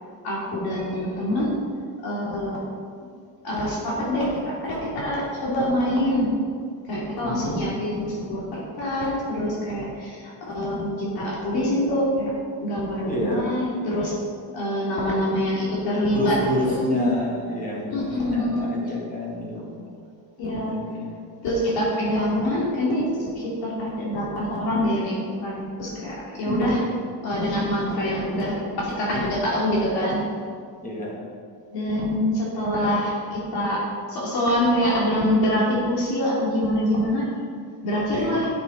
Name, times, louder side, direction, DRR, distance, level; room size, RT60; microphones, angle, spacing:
voice 1, 0.2-1.5 2.0-2.6 3.4-6.3 6.9-12.3 12.6-14.2 14.5-16.7 17.9-18.7 20.4-20.7 21.4-26.8 27.2-30.2 31.7-33.8 34.1-37.3 37.8-38.5, equal, 60° left, -5 dB, 2.9 m, -25 dB
voice 2, 7.2-7.6 13.0-13.5 16.1-18.0 18.3-19.9 20.5-21.1 26.4-26.9 30.8-31.3 38.1-38.5, left 1 dB, 20° left, -4 dB, 2.3 m, -28 dB
13.0 x 7.9 x 4.0 m, 2.2 s
cardioid pair, 165°, 42 cm